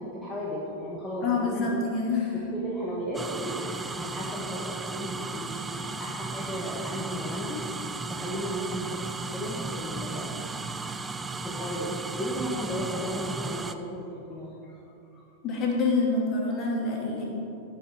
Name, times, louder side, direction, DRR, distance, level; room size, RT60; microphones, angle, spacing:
voice 1, 0.0-1.8 2.3-7.6 8.1-11.0 11.4-14.8 15.1-15.2, equal, 10° left, -5 dB, 1.6 m, -35 dB
voice 2, 1.2-2.4 15.4-17.3, left 3 dB, 35° left, -2 dB, 2.5 m, -26 dB
sound 1, 3.1-13.7, right 3 dB, 15° right, 0.5 m, -35 dB
17.0 x 6.0 x 4.6 m, 2.8 s
figure-of-eight pair, 90°, 0 cm